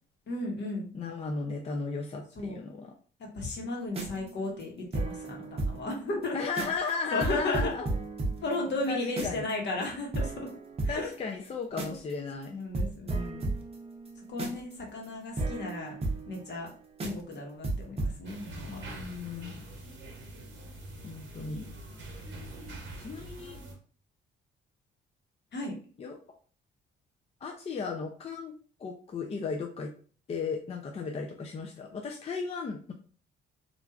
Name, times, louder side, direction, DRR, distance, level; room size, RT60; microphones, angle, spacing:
voice 1, 0.3-0.9 2.4-2.6 3.3-6.4 7.1-7.7 8.4-10.5 10.8-11.1 11.8-12.0 12.5-13.5 14.3-16.0 16.3-16.7 17.0-18.8 25.5-25.7, left 2 dB, 60° left, 0 dB, 1.1 m, -34 dB
voice 2, 0.9-2.9 6.3-7.9 8.9-9.4 10.9-12.5 18.7-19.6 21.0-21.7 23.0-23.6 26.0-26.2 27.4-28.5 28.8-29.9 30.3-32.9, left 4 dB, 30° left, 2 dB, 0.4 m, -35 dB
sound 1, 3.8-5.9 6.2-6.3 6.6-6.9 7.2-9.5 9.8-9.9 10.1-12.1 12.4-12.5 12.7-16.7 17.0-17.3 17.6-18.2, right 2 dB, 30° right, 0.7 m, -34 dB
sound 2, 18.2-23.7, right 1 dB, 70° right, 0.9 m, -44 dB
3.1 x 2.4 x 2.3 m, 0.41 s
cardioid pair, 90°, 20 cm